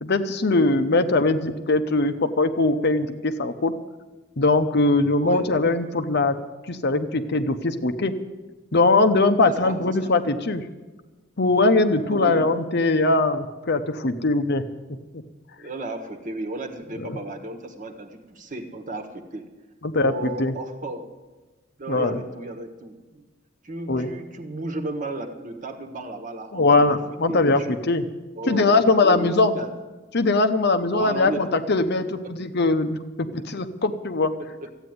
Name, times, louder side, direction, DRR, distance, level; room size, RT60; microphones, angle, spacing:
voice 1, 0.0-3.7 4.4-6.4 6.7-8.1 8.7-10.6 11.4-14.6 17.1-17.2 19.8-20.5 21.9-22.2 23.9-24.1 26.5-28.0 28.5-29.6 30.1-34.3, left 2 dB, 50° left, 9 dB, 0.8 m, -21 dB
voice 2, 9.4-10.1 12.1-12.5 15.6-19.5 20.0-21.1 21.8-23.3 23.6-27.0 27.3-27.7 28.3-29.7 30.8-31.4 34.4-34.7, right 2 dB, 35° right, 5 dB, 1.4 m, -34 dB
14.0 x 8.9 x 9.5 m, 1.2 s
head